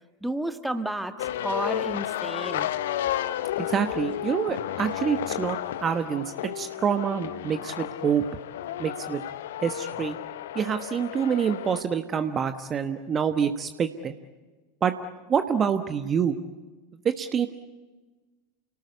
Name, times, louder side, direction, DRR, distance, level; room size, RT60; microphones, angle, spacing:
voice 1, 0.2-2.7, right 1 dB, 5° right, 8 dB, 1.6 m, -31 dB
sound 1, 1.2-11.8, left 12 dB, 65° left, 0.9 m, -32 dB
voice 2, 3.6-8.2 8.8-9.2 9.6-10.2 10.5-14.2 14.8-14.9 15.3-16.4 17.0-17.5, right 7 dB, 25° right, 8 dB, 1.2 m, -26 dB
30.0 x 18.5 x 8.4 m, 1.3 s
figure-of-eight pair, 85°, 0 cm